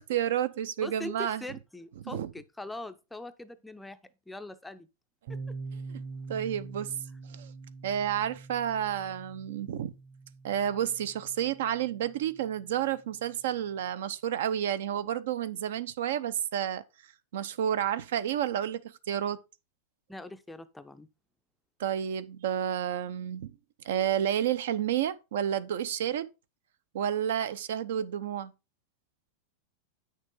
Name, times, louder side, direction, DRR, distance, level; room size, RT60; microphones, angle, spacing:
voice 1, 0.0-1.4 2.0-2.3 5.9-6.0 6.3-6.9 7.3-7.5 7.8-9.9 10.4-16.8 17.3-19.4 21.8-23.5 23.8-26.3 26.9-28.5, right 10 dB, 75° right, 0.8 m, -30 dB
voice 2, 0.8-4.0 4.3-4.9 5.3-5.5 20.1-21.1, left 2 dB, 5° left, 0.4 m, -42 dB
sound 1, 5.3-13.0, right 4 dB, 55° right, 2.7 m, -44 dB
8.9 x 6.4 x 3.7 m
supercardioid pair, 165°, 0 cm